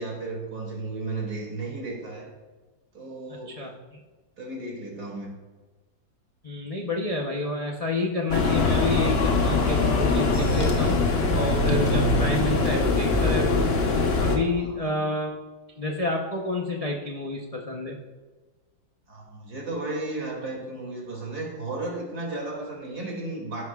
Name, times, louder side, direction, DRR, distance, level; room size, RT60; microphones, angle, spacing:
voice 1, 0.0-2.3 2.9-3.6 4.4-5.3 14.5-15.0 19.1-23.7, right 2 dB, 50° right, -1 dB, 3.0 m, -34 dB
voice 2, 6.4-11.0 11.3-13.7 14.2-15.4 15.8-18.0, left 2 dB, 60° left, 0 dB, 0.3 m, -29 dB
sound 1, 8.3-14.4, left 3 dB, 40° left, 1.0 m, -22 dB
13.5 x 10.5 x 2.4 m, 1.3 s
omnidirectional pair, 2.1 m